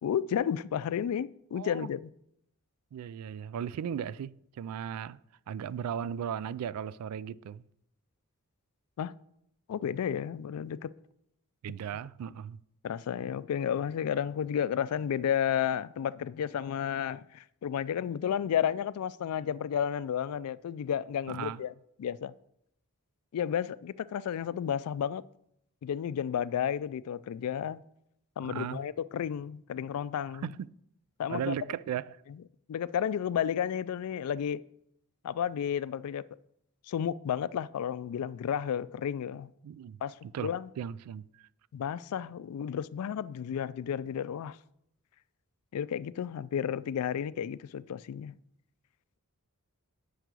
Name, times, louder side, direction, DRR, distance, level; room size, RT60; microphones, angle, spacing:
voice 1, 0.0-2.1 9.0-9.1 9.7-10.9 12.8-21.7 22.0-22.3 23.3-25.2 25.8-27.8 28.4-30.5 31.2-31.6 32.3-32.4 32.7-34.6 35.2-36.3 36.9-39.5 40.0-40.7 41.7-44.6 45.7-48.4, left 8 dB, 75° left, 0.3 m, -32 dB
voice 2, 1.6-1.9 2.9-5.2 5.5-7.6 11.6-12.6 21.3-21.6 28.4-28.8 30.4-30.6 31.3-32.1 39.6-41.3, right 8 dB, 80° right, 0.3 m, -36 dB
8.1 x 4.7 x 6.1 m
head